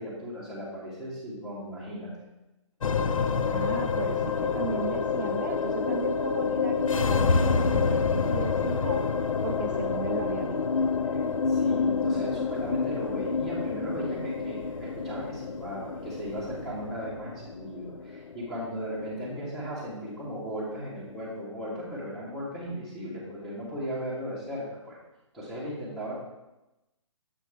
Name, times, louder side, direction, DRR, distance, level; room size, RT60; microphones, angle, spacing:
voice 1, 0.0-2.1 11.1-11.2 11.5-25.0 25.3-26.1, equal, ahead, -9 dB, 2.5 m, -36 dB
sound 1, 2.8-21.3, left 5 dB, 80° left, 0.6 m, -28 dB
voice 2, 3.5-9.0 9.4-10.9, right 7 dB, 35° right, 5 dB, 0.4 m, -36 dB
7.7 x 6.2 x 3.3 m, 0.97 s
hypercardioid pair, 145°, 17 cm